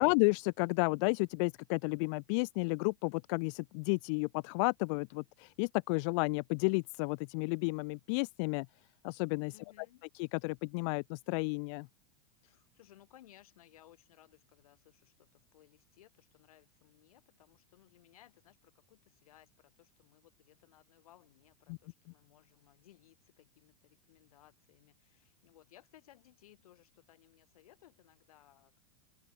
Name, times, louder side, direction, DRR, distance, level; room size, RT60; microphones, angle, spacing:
voice 1, 0.0-8.7 9.0-9.5 10.1-11.9 21.7-21.8, left 33 dB, 55° left, 0.6 m, -32 dB
voice 2, 9.5-10.1 12.4-28.9, left 13 dB, 80° left, 5.2 m, -62 dB
hypercardioid pair, 110°, 18 cm